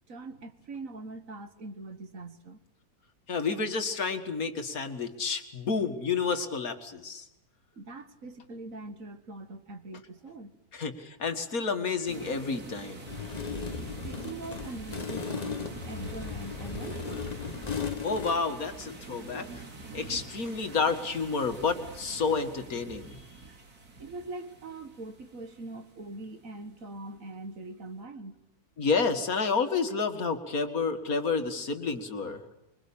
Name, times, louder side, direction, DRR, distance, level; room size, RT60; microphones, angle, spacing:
voice 1, 0.1-2.6 6.6-6.7 7.8-10.5 14.0-17.1 24.0-28.4, right 2 dB, 60° right, 8 dB, 2.0 m, -42 dB
voice 2, 3.3-7.3 10.7-13.1 18.0-19.6 19.9-23.2 28.8-32.4, left 4 dB, 70° left, 6 dB, 2.3 m, -30 dB
sound 1, 12.1-26.6, right 3 dB, 85° right, 3.1 m, -45 dB
sound 2, 13.1-18.4, left 5 dB, 30° left, 1.1 m, -36 dB
25.5 x 23.0 x 8.7 m, 0.93 s
omnidirectional pair, 1.6 m